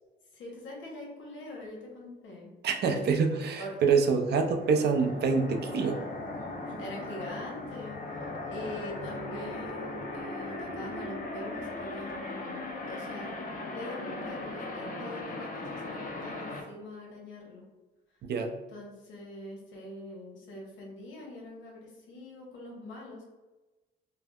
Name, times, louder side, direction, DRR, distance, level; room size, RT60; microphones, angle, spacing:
voice 1, 0.3-2.5 2.8-3.1 3.6-3.8 6.6-13.4 13.7-17.6 18.7-23.2, left 1 dB, 75° left, -2 dB, 0.9 m, -43 dB
voice 2, 2.6-6.0 18.2-18.5, right 5 dB, 55° right, 4 dB, 0.4 m, -26 dB
sound 1, 3.9-16.6, left 2 dB, 45° left, 0.5 m, -38 dB
3.4 x 2.0 x 2.2 m, 1.2 s
cardioid pair, 90°, 20 cm